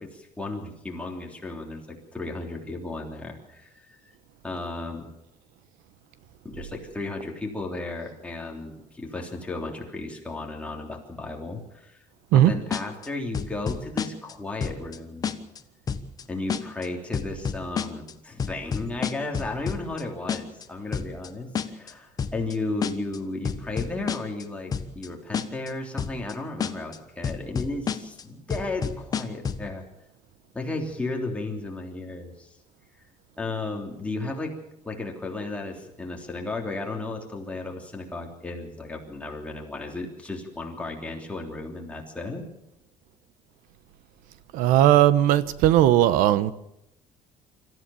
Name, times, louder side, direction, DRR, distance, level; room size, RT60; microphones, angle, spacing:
voice 1, 0.0-4.1 4.4-5.1 6.4-12.0 12.3-15.3 16.3-29.9 30.5-32.5 33.4-34.5 34.8-42.5, left 2 dB, 10° left, 0 dB, 3.2 m, -34 dB
sound 1, 12.7-13.1 13.3-14.3 14.6-15.0 15.2-15.6 15.9-16.2 16.5-16.9 17.1-18.1 18.4-20.0 20.3-20.6 20.9-21.3 21.6-21.9 22.2-22.5 22.8-23.2 23.5-24.4 24.7-25.1 25.3-25.7 26.0-26.3 26.6-27.0 27.2-28.2 28.5-29.7, left 6 dB, 25° left, 1.1 m, -29 dB
voice 2, 44.5-46.5, right 12 dB, 90° right, 15 dB, 1.1 m, -18 dB
25.5 x 14.5 x 7.1 m, 0.86 s
cardioid pair, 160°, 14 cm